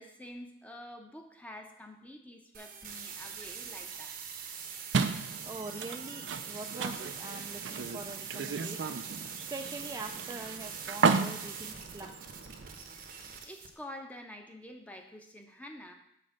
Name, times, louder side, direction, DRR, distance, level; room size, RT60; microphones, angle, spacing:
voice 1, 0.0-4.1 13.4-15.9, left 1 dB, 10° left, 4 dB, 0.7 m, -47 dB
sound 1, 2.5-13.7, right 7 dB, 50° right, 0.8 m, -43 dB
sound 2, 4.9-12.7, right 5 dB, 90° right, 0.5 m, -34 dB
voice 2, 5.2-12.2, right 2 dB, 20° right, 3 dB, 0.3 m, -44 dB
5.8 x 4.5 x 6.5 m, 0.75 s
head